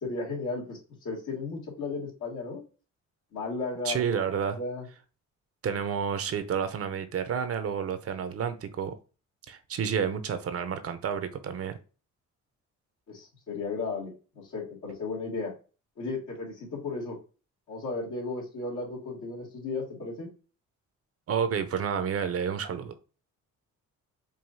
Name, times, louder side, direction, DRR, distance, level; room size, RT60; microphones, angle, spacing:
voice 1, 0.0-2.6 3.3-4.0 4.6-4.9 13.1-15.5 16.0-17.2 17.7-20.3, left 3 dB, 75° left, 2.2 m, -35 dB
voice 2, 3.8-4.6 5.6-8.9 9.5-11.8 21.3-22.9, right 7 dB, 50° right, 0.6 m, -30 dB
4.7 x 2.7 x 2.6 m
cardioid pair, 90°, 30 cm